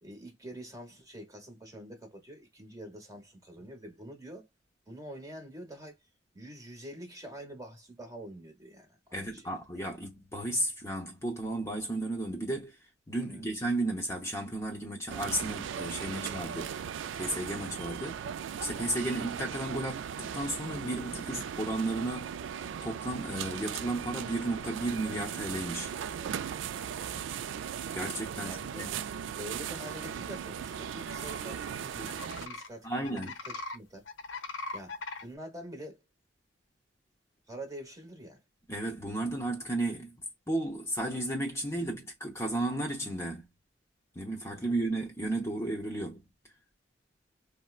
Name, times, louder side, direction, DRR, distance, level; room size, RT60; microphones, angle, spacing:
voice 1, 0.0-4.5 4.9-6.0 6.3-9.5 9.7-9.8 13.3-13.4 27.0-27.3 28.4-29.0 29.3-34.1 34.7-36.0 37.5-38.4 44.5-44.8, right 1 dB, 20° right, 1.0 m, -46 dB
voice 2, 9.1-12.8 13.1-16.7 17.1-18.2 18.6-22.3 22.8-25.9 27.9-28.9 32.8-33.3 38.7-40.1 40.5-43.4 44.1-46.2, right 1 dB, 15° left, 0.7 m, -33 dB
sound 1, 15.1-32.5, right 8 dB, 75° right, 0.3 m, -38 dB
sound 2, 31.0-31.4 32.1-32.7 33.0-33.8 34.1-35.2, left 3 dB, 75° left, 0.7 m, -40 dB
4.2 x 2.1 x 2.3 m
head